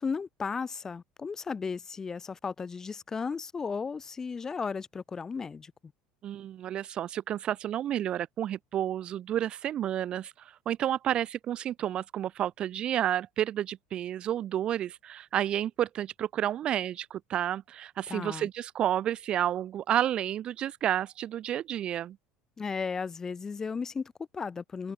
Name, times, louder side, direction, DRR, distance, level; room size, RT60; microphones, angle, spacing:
voice 1, 0.0-5.7 18.1-18.5 22.6-24.9, left 5 dB, 20° left, 2.4 m, -35 dB
voice 2, 6.2-22.2, right 11 dB, 40° right, 0.3 m, -31 dB
cardioid pair, 135°, 3 cm